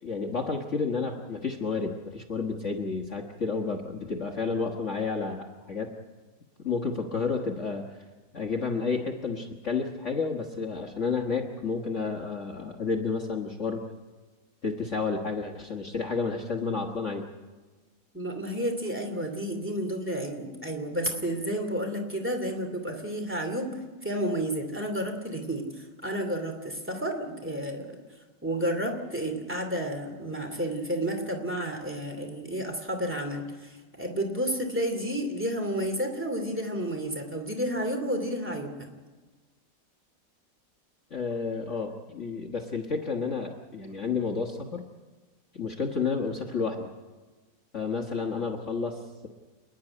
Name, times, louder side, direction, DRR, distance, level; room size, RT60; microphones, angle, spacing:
voice 1, 0.0-5.9 6.6-7.9 8.3-13.8 14.6-17.3 41.1-44.9 45.5-46.9 47.7-49.3, left 4 dB, 45° left, 1 dB, 1.7 m, -31 dB
voice 2, 18.1-28.0 28.4-38.9, right 1 dB, 5° right, 4 dB, 2.6 m, -31 dB
28.5 x 10.5 x 9.8 m, 1.3 s
omnidirectional pair, 2.0 m